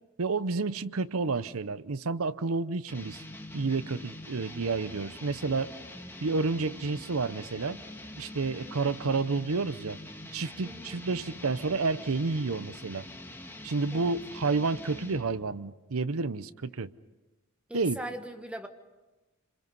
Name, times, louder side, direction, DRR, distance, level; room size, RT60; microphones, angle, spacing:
voice 1, 0.2-3.2 3.5-5.7 6.2-7.8 8.2-10.0 10.3-13.0 13.6-16.9 17.7-18.0, right 4 dB, 75° right, 15 dB, 0.8 m, -30 dB
sound 1, 2.9-15.4, left 1 dB, 10° left, 1.7 m, -45 dB
voice 2, 10.6-11.0 13.9-14.1 17.7-18.7, right 1 dB, 5° right, 5 dB, 1.4 m, -40 dB
28.0 x 26.5 x 5.5 m, 1.1 s
head